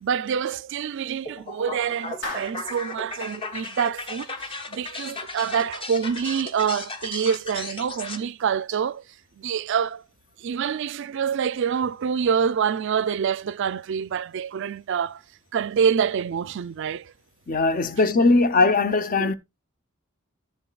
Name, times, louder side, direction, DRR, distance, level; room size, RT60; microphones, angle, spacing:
voice 1, 0.0-9.0 9.4-10.0 10.4-15.2 15.5-17.1 19.2-19.3, right 7 dB, 60° right, 0.4 m, -26 dB
sound 1, 1.3-8.2, left 3 dB, 25° left, 1.0 m, -36 dB
Clapping, 2.2-2.9, left 2 dB, 60° left, 3.1 m, -35 dB
voice 2, 17.5-19.3, left 3 dB, 45° left, 0.7 m, -20 dB
13.5 x 7.0 x 2.3 m
head